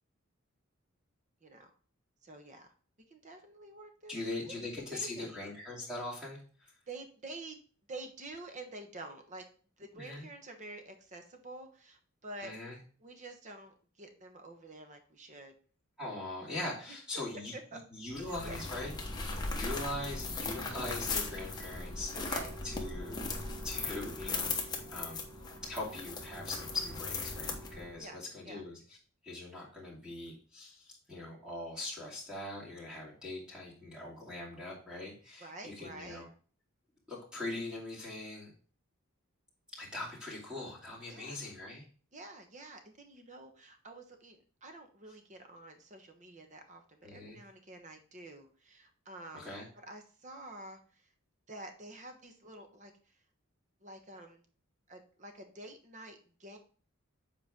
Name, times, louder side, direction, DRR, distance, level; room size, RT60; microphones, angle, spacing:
voice 1, 1.4-1.7 2.2-2.7 3.1-5.4 6.9-7.6 7.9-9.4 9.8-12.5 13.0-15.5 17.5-17.8 18.4-18.6 22.1-22.6 28.0-28.6 35.4-36.2 41.1-41.4 42.1-51.1 51.5-53.2 53.8-54.4 54.9-56.6, right 2 dB, 35° right, 5 dB, 1.1 m, -49 dB
voice 2, 4.1-6.7 9.9-10.2 12.4-12.8 16.0-17.5 17.9-18.9 19.2-22.3 22.6-23.2 23.6-25.2 25.6-29.0 29.2-36.3 37.1-38.5 39.7-41.9 47.0-47.4 49.3-49.7, left 2 dB, 5° right, -6 dB, 2.6 m, -41 dB
sound 1, 18.1-28.0, left 3 dB, 20° left, 1.0 m, -38 dB
7.9 x 4.5 x 3.6 m, 0.41 s
head